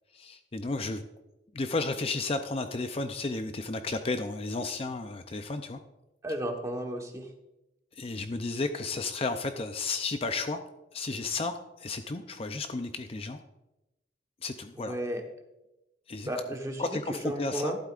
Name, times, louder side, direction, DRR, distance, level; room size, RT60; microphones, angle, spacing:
voice 1, 0.1-1.0 1.5-5.8 7.9-10.6 10.9-13.4 14.4-15.0 16.1-16.3 16.8-17.7, left 3 dB, 30° left, 8 dB, 0.5 m, -33 dB
voice 2, 6.2-7.3 14.8-15.2 16.3-17.8, right 1 dB, 15° right, 2 dB, 1.2 m, -34 dB
13.0 x 11.5 x 2.5 m, 0.95 s
head